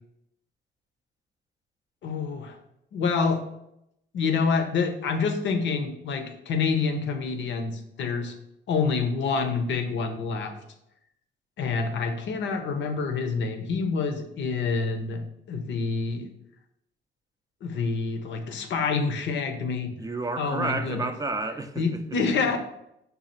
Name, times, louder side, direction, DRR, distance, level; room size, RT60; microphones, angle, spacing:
voice 1, 2.0-2.6 2.9-3.4 4.1-8.3 8.7-10.6 11.6-15.2 15.5-16.3 17.6-19.9 20.4-21.1 21.8-22.6, left 4 dB, 70° left, 0.7 m, -27 dB
voice 2, 20.0-22.0 22.3-22.4, right 3 dB, 20° right, 0.4 m, -31 dB
5.4 x 2.3 x 4.2 m
cardioid pair, 90°, 20 cm